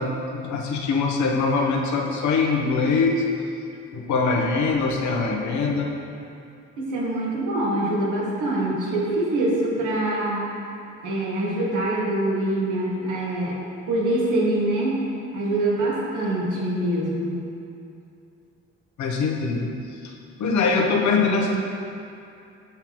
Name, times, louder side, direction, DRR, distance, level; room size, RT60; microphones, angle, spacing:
voice 1, 0.0-3.2 3.9-5.9 19.0-19.7 20.0-20.1 20.4-21.6, left 4 dB, 70° left, 1 dB, 0.9 m, -23 dB
voice 2, 6.8-10.4 11.0-13.5 13.9-15.0 15.3-17.4, right 1 dB, 85° right, -5 dB, 1.5 m, -24 dB
6.8 x 5.7 x 3.0 m, 2.6 s
cardioid pair, 90°, 30 cm